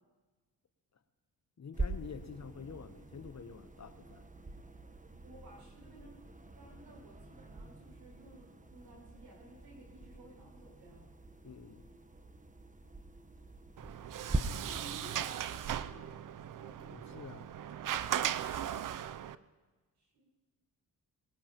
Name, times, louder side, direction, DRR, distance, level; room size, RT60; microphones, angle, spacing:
voice 1, 1.6-4.2 11.4-11.9 16.9-17.5, left 6 dB, 45° left, 11 dB, 1.1 m, -48 dB
sound 1, 1.7-14.4, right 2 dB, 20° right, 1.1 m, -43 dB
voice 2, 5.2-6.2 6.5-11.1 14.1-17.3 20.0-20.3, right 1 dB, 80° right, -2 dB, 6.1 m, -55 dB
Sliding door, 13.8-19.3, right 10 dB, 55° right, 0.6 m, -38 dB
22.0 x 20.0 x 3.0 m, 1.3 s
supercardioid pair, 55°, 39 cm